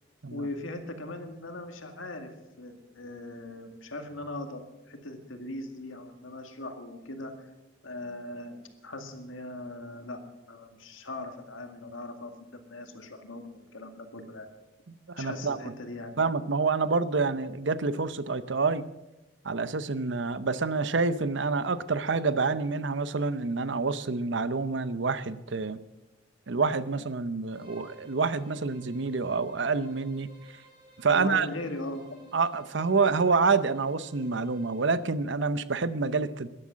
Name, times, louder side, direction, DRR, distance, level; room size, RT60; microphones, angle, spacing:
voice 1, 0.3-2.3 2.6-4.6 4.9-7.5 7.8-8.6 8.8-10.2 10.5-14.5 15.2-16.1 27.6-27.7 31.1-32.2, left 2 dB, 85° left, 6 dB, 2.1 m, -39 dB
voice 2, 15.1-15.6 16.2-18.9 19.4-25.8 26.5-30.3 31.0-31.5 32.3-36.5, right 4 dB, 65° right, 15 dB, 0.7 m, -27 dB
Bowed string instrument, 27.5-35.2, equal, 25° right, 5.2 m, -55 dB
13.5 x 11.0 x 7.4 m, 0.98 s
head